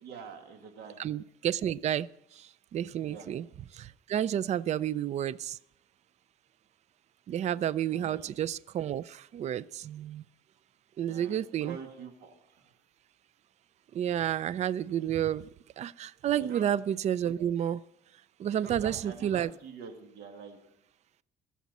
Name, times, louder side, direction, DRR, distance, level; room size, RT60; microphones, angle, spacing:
voice 1, 0.0-1.0 3.0-3.3 7.9-8.3 11.1-12.7 16.4-16.7 18.5-20.6, right 6 dB, 75° right, 5 dB, 2.1 m, -46 dB
voice 2, 1.0-3.5 3.7-5.6 7.3-10.2 11.0-11.8 13.9-15.5 15.8-17.8 18.4-19.5, right 10 dB, 40° right, 19 dB, 0.4 m, -31 dB
21.5 x 7.2 x 4.2 m, 0.81 s
cardioid pair, 110°, 17 cm